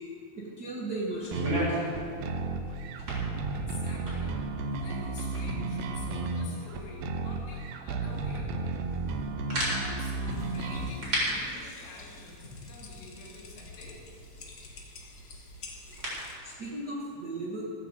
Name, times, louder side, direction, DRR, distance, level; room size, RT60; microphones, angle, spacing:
voice 1, 0.3-1.4 16.4-17.7, right 2 dB, 50° right, -5 dB, 1.2 m, -36 dB
sound 1, 1.1-16.3, right 1 dB, 30° right, 4.7 m, -38 dB
sound 2, 1.3-10.9, right 3 dB, 85° right, 2.8 m, -33 dB
voice 2, 3.5-4.4 4.8-8.8 9.8-14.1, left 3 dB, 75° left, -3 dB, 4.3 m, -48 dB
sound 3, 10.3-16.4, left 2 dB, 50° left, 1.3 m, -48 dB
14.5 x 9.0 x 7.3 m, 2.5 s
omnidirectional pair, 4.3 m